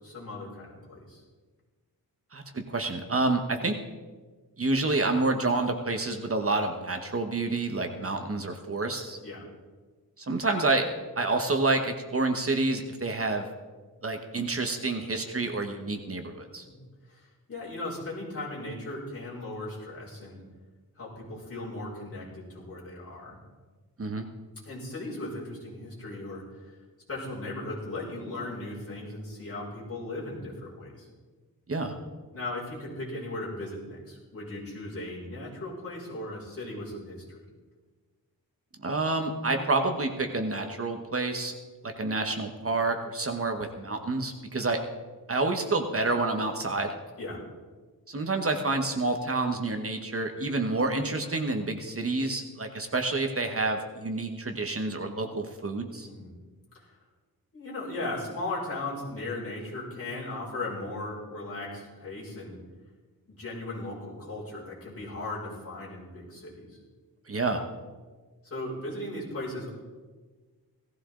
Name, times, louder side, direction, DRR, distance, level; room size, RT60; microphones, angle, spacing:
voice 1, 0.0-1.2 9.2-9.4 16.6-16.8 17.1-20.4 21.0-23.4 24.7-26.8 27.1-31.1 32.3-37.4 47.2-47.4 56.0-56.3 56.7-57.0 57.5-62.5 63.3-66.8 68.4-69.8, left 2 dB, 40° left, -6 dB, 5.9 m, -37 dB
voice 2, 2.3-3.7 4.6-9.2 10.2-10.8 11.2-13.5 14.0-16.6 24.0-24.3 31.7-31.9 38.8-41.5 41.8-44.8 45.3-46.9 48.1-56.1 67.3-67.6, right 3 dB, 35° right, 5 dB, 1.2 m, -28 dB
18.0 x 14.5 x 3.8 m, 1.4 s
wide cardioid pair, 145°, 37 cm